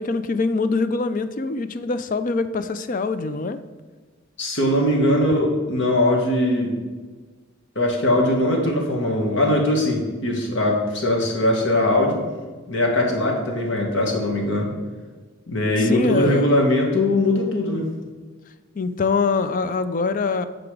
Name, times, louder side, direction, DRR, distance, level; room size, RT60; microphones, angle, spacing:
voice 1, 0.0-3.6 15.8-16.5 18.8-20.5, left 4 dB, 40° left, 12 dB, 0.4 m, -24 dB
voice 2, 4.4-6.7 7.7-12.2 12.7-14.7 15.5-17.9, left 1 dB, 60° left, 1 dB, 1.4 m, -20 dB
7.8 x 4.9 x 4.8 m, 1.4 s
head